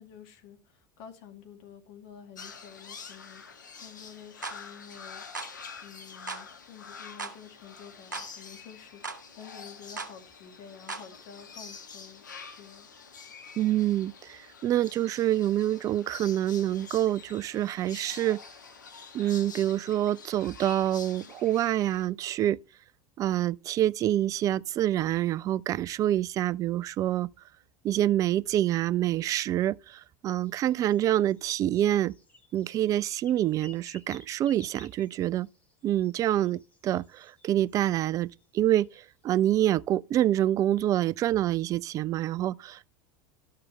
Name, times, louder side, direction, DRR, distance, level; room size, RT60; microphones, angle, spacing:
voice 1, 0.0-5.2 5.8-12.3 12.5-12.9, left 8 dB, 55° left, 2.2 m, -50 dB
sound 1, 2.4-22.1, left 5 dB, 80° left, 1.3 m, -47 dB
sound 2, 4.4-4.6 5.3-5.5 6.3-6.5 7.2-7.4 8.1-8.3 9.0-9.2 10.0-10.1 10.9-11.1, right 3 dB, 85° right, 1.1 m, -37 dB
voice 2, 13.6-18.4 19.1-22.6 23.2-27.3 27.8-32.1 32.5-35.5 35.8-38.3 38.5-42.9, right 12 dB, 35° right, 0.3 m, -26 dB
sound 3, 30.4-38.5 38.8-39.5, left 1 dB, 15° left, 2.2 m, -56 dB
12.0 x 6.7 x 3.2 m
figure-of-eight pair, 80°, 10 cm